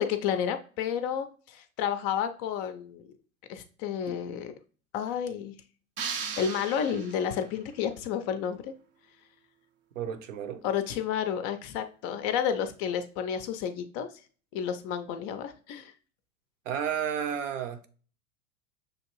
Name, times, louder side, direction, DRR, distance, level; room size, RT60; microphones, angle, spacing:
voice 1, 0.0-3.1 3.5-4.5 4.9-5.5 6.4-8.7 10.6-14.1 14.5-15.9, left 8 dB, 35° left, 0.4 m, -31 dB
sound 1, 6.0-7.5, right 6 dB, 30° right, 0.4 m, -37 dB
voice 2, 10.0-10.6 16.7-17.9, right 8 dB, 60° right, 0.7 m, -32 dB
6.3 x 2.5 x 2.9 m
figure-of-eight pair, 80°, 42 cm